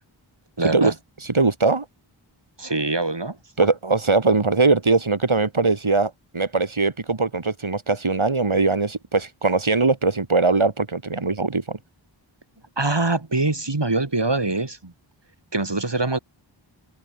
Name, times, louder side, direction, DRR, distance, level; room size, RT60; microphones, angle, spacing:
voice 1, 0.6-0.9 2.6-3.7 12.8-14.9 15.5-16.2, right 2 dB, 60° right, 8.0 m, -24 dB
voice 2, 1.2-1.8 3.6-11.8, right 3 dB, 80° right, 4.9 m, -21 dB
wide cardioid pair, 45°, 48 cm